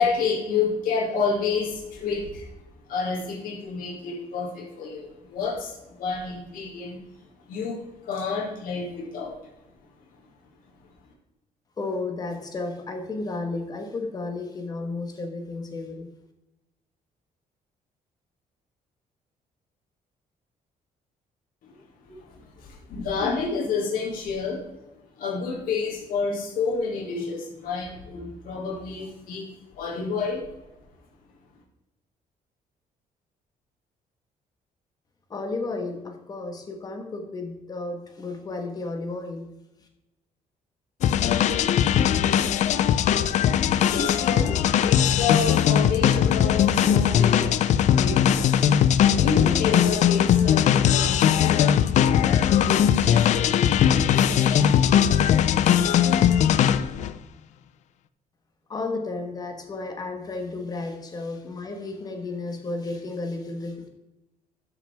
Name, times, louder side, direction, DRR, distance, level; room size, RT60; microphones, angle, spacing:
voice 1, 0.0-2.5 2.9-7.0 7.5-9.4 21.6-21.7 22.0-24.6 25.2-30.4 43.0-43.5 43.9-47.6 47.9-48.5 49.1-55.2, left 5 dB, 80° left, -2 dB, 2.4 m, -30 dB
voice 2, 11.8-16.1 35.3-39.5 58.7-63.9, left 3 dB, 25° left, 5 dB, 1.3 m, -33 dB
sound 1, 41.0-57.1, left 9 dB, 55° left, 0.4 m, -20 dB
12.5 x 5.9 x 3.4 m, 0.97 s
cardioid pair, 175°, 14 cm